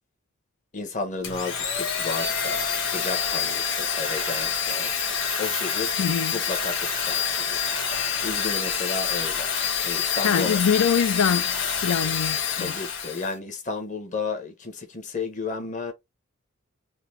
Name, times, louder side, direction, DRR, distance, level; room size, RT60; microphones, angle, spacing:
voice 1, 0.7-5.0 5.4-6.0 6.3-10.6 12.6-15.9, left 4 dB, 35° left, 1.1 m, -33 dB
Domestic sounds home sounds, 1.2-13.3, left 6 dB, 60° left, 1.3 m, -27 dB
voice 2, 6.0-6.3 10.2-12.7, left 7 dB, 80° left, 0.4 m, -24 dB
3.9 x 2.7 x 3.3 m
head